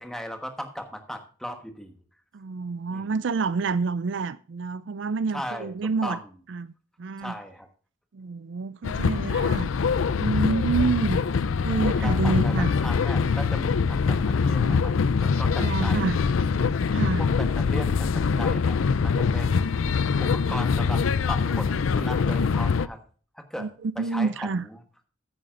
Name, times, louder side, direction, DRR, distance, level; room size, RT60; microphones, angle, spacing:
voice 1, 0.0-1.9 2.9-3.1 5.3-5.7 6.0-6.3 7.2-7.7 11.8-14.9 15.2-16.1 17.2-18.8 19.0-19.7 20.2-21.0 21.3-23.0 23.3-23.7 24.0-24.8, equal, ahead, 1.2 m, -37 dB
voice 2, 2.3-6.2 6.5-6.7 7.0-7.3 8.1-9.7 10.2-11.2 11.6-12.8 14.6-14.9 15.6-16.2 16.9-17.2 23.6-24.6, right 4 dB, 60° right, 0.4 m, -28 dB
sound 1, 8.8-22.9, left 5 dB, 80° left, 0.5 m, -24 dB
14.5 x 9.1 x 2.5 m
head